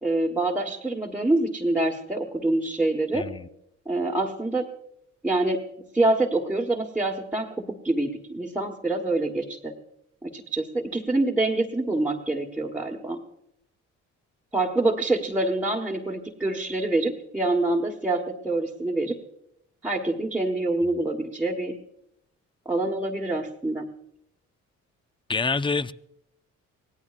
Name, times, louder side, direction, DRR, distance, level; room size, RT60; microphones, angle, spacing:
voice 1, 0.0-3.3 3.9-4.7 5.2-9.8 10.2-13.2 14.5-19.2 19.8-21.7 22.6-23.9, right 2 dB, 5° right, 1.3 m, -26 dB
voice 2, 3.1-3.5 20.8-20.9 25.3-25.9, left 4 dB, 15° left, 0.4 m, -27 dB
24.5 x 17.5 x 2.5 m
cardioid pair, 90°, 30 cm